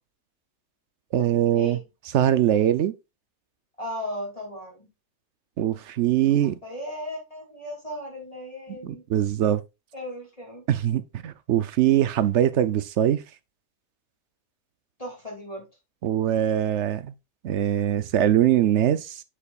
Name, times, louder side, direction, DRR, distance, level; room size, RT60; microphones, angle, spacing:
voice 1, 1.1-1.8 2.1-2.9 5.6-6.5 8.8-9.6 10.7-13.2 16.0-17.1 17.4-19.2, right 11 dB, 60° right, 0.8 m, -22 dB
voice 2, 3.8-4.9 6.1-9.0 9.9-10.6 15.0-15.7, left 1 dB, 25° left, 2.9 m, -36 dB
7.5 x 6.8 x 2.4 m
omnidirectional pair, 1.5 m